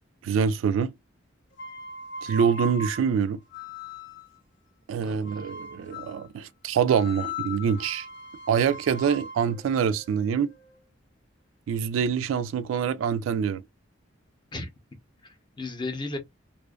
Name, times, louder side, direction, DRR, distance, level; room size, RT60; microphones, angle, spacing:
voice 1, 0.2-0.9 2.2-3.4 4.9-8.1 8.5-10.5 11.7-13.6, right 7 dB, 90° right, 0.3 m, -25 dB
sound 1, 1.5-4.4 5.2-6.3 6.9-10.9, left 2 dB, 60° left, 0.6 m, -39 dB
voice 2, 5.0-5.4 14.5-14.7 15.2-16.2, left 2 dB, 25° left, 0.6 m, -35 dB
2.5 x 2.2 x 2.2 m
head